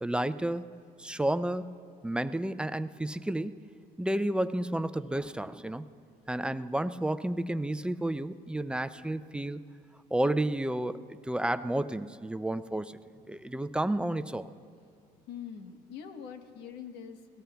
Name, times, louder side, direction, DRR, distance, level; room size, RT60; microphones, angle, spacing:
voice 1, 0.0-0.7 1.0-3.7 4.0-5.8 6.3-9.6 10.1-13.0 13.3-14.5, right 1 dB, 5° right, 12 dB, 0.3 m, -31 dB
voice 2, 15.3-17.4, left 7 dB, 85° left, 6 dB, 1.2 m, -44 dB
26.5 x 18.5 x 2.3 m, 2.3 s
cardioid pair, 110°, 17 cm